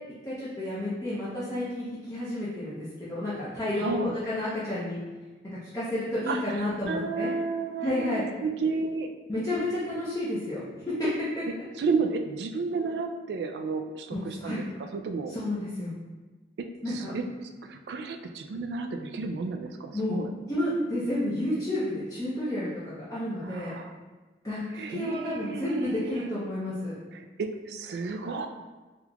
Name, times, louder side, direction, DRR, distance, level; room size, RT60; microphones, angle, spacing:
voice 1, 0.2-5.0 5.4-7.3 7.8-8.3 9.3-11.6 14.1-14.6 15.3-15.9 16.8-17.1 19.9-20.2 20.5-23.7 24.4-27.0, left 1 dB, 20° left, -10 dB, 0.6 m, -31 dB
voice 2, 3.8-4.2 6.3-6.4 6.9-9.1 11.8-14.6 14.9-15.3 16.6-17.2 17.6-20.3 23.4-23.9 24.8-26.3 27.1-28.5, right 4 dB, 70° right, 5 dB, 0.3 m, -32 dB
3.7 x 2.9 x 2.3 m, 1.3 s
head